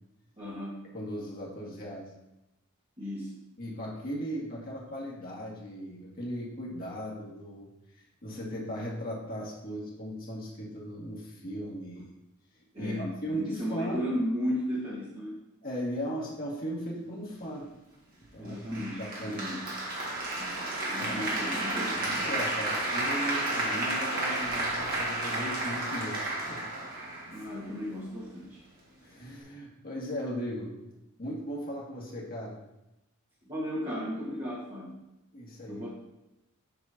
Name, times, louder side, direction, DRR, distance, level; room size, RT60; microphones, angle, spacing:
voice 1, 0.4-0.8 3.0-3.4 12.7-15.4 18.4-19.6 20.3-22.3 27.3-28.6 33.4-35.0 35.7-35.9, equal, 30° right, -8 dB, 1.4 m, -35 dB
voice 2, 0.9-2.1 3.6-7.7 8.0-12.1 12.8-14.0 15.6-17.7 18.3-19.6 21.0-21.3 22.0-26.6 29.0-30.7 31.2-32.6 35.3-35.8, equal, 45° left, -4 dB, 1.8 m, -37 dB
Applause, 18.7-27.7, right 2 dB, 45° right, 1.6 m, -32 dB
8.0 x 5.9 x 2.7 m, 0.90 s
head